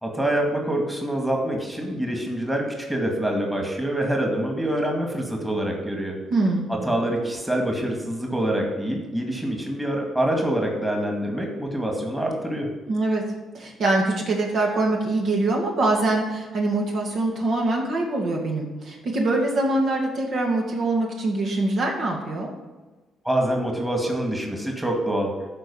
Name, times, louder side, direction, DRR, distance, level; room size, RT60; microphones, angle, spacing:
voice 1, 0.0-6.2 6.7-12.7 23.2-25.3, right 1 dB, 10° right, 1 dB, 2.1 m, -25 dB
voice 2, 6.3-6.7 12.9-13.2 13.5-22.5, right 2 dB, 60° right, 0 dB, 2.2 m, -24 dB
12.0 x 4.8 x 7.1 m, 1.2 s
cardioid pair, 90°, 0 cm